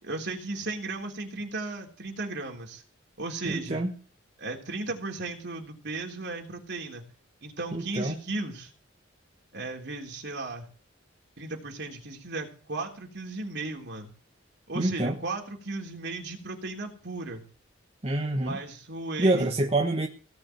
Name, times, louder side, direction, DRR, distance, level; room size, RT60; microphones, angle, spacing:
voice 1, 0.0-2.8 3.2-3.8 4.4-7.0 7.4-8.7 9.5-10.7 11.4-14.1 14.7-17.4 18.4-19.5, right 3 dB, 60° right, 2 dB, 3.4 m, -35 dB
voice 2, 3.4-3.9 7.7-8.1 14.7-15.2 18.0-18.6 19.2-20.1, right 2 dB, 30° right, 3 dB, 1.2 m, -26 dB
17.5 x 6.1 x 9.0 m, 0.39 s
head